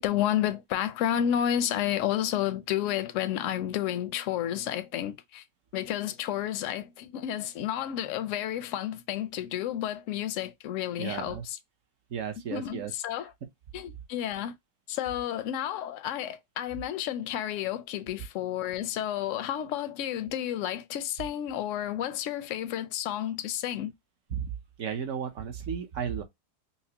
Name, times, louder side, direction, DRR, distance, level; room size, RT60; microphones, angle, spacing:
voice 1, 0.0-5.4 5.7-11.6 12.5-13.3 13.7-14.5 14.9-23.9, left 11 dB, 70° left, 0.7 m, -31 dB
voice 2, 11.0-11.4 12.1-12.9 24.3-24.5 24.8-26.2, right 8 dB, 60° right, 1.1 m, -34 dB
5.7 x 2.1 x 2.8 m
omnidirectional pair, 1.7 m